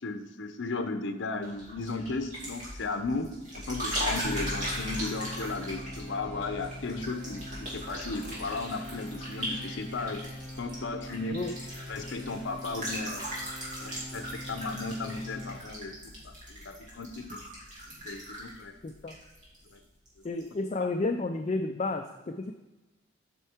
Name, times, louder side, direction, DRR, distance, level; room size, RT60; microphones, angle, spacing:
voice 1, 0.0-10.2 10.6-11.4 11.9-13.3 13.8-15.9 16.2-17.4 18.0-18.7 20.8-20.9, left 3 dB, 75° left, 8 dB, 0.7 m, -35 dB
sound 1, 1.4-19.8 20.1-20.5, equal, 40° right, 2.5 m, -39 dB
sound 2, 4.2-15.6, left 1 dB, 15° left, 2.8 m, -43 dB
voice 2, 18.8-19.2 20.2-22.5, left 3 dB, 35° left, 5 dB, 0.4 m, -31 dB
8.2 x 5.6 x 4.4 m, 1.1 s
head